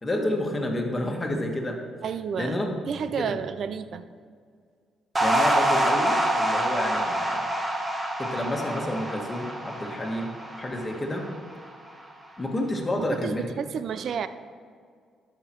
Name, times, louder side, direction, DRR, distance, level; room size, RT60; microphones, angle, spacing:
voice 1, 0.0-1.7 2.4-2.7 3.2-3.3 5.2-7.5 8.2-11.2 12.4-13.5, left 1 dB, 20° left, 1 dB, 1.7 m, -29 dB
voice 2, 2.0-2.5 2.9-4.0 13.0-14.3, right 7 dB, 60° right, 12 dB, 0.5 m, -31 dB
sound 1, 5.2-11.6, right 1 dB, 20° right, 1.5 m, -26 dB
12.5 x 5.9 x 4.6 m, 2.1 s
cardioid pair, 90°, 0 cm